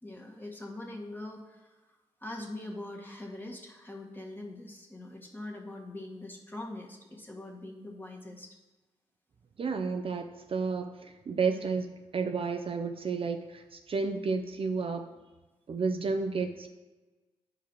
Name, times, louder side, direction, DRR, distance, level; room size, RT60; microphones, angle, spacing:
voice 1, 0.0-8.6, left 1 dB, 15° left, 0 dB, 1.8 m, -43 dB
voice 2, 9.6-11.9 12.1-15.1 15.7-16.7, right 4 dB, 50° right, 6 dB, 0.5 m, -31 dB
10.0 x 4.8 x 4.6 m, 1.2 s
cardioid pair, 60°, 12 cm